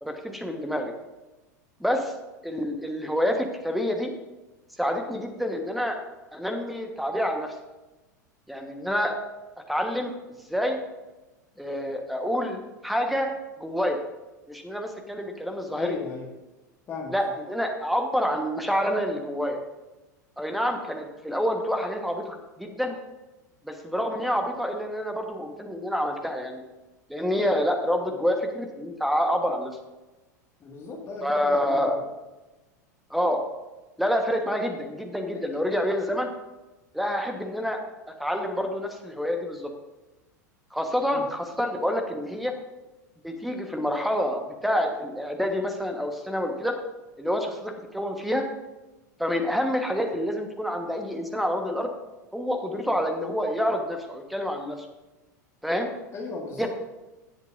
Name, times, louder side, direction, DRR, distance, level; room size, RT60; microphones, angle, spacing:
voice 1, 0.0-0.9 1.8-2.1 2.4-4.1 4.8-6.0 6.3-7.5 8.5-9.2 9.7-10.1 10.5-10.8 11.6-13.3 13.6-14.0 14.5-15.9 17.1-19.6 20.4-23.0 23.6-26.6 27.1-29.8 31.2-31.9 33.1-33.4 34.0-36.3 36.9-37.8 38.1-39.7 40.7-42.5 43.2-46.7 47.2-48.4 49.2-51.9 52.3-54.8 55.6-55.9 56.6-56.7, equal, ahead, 4 dB, 1.3 m, -27 dB
voice 2, 15.8-16.3 16.9-17.3 30.6-32.0 35.3-35.6 41.1-41.3 56.1-56.7, left 4 dB, 30° left, -1 dB, 2.0 m, -37 dB
17.0 x 8.0 x 2.6 m, 1.1 s
figure-of-eight pair, 85°, 10 cm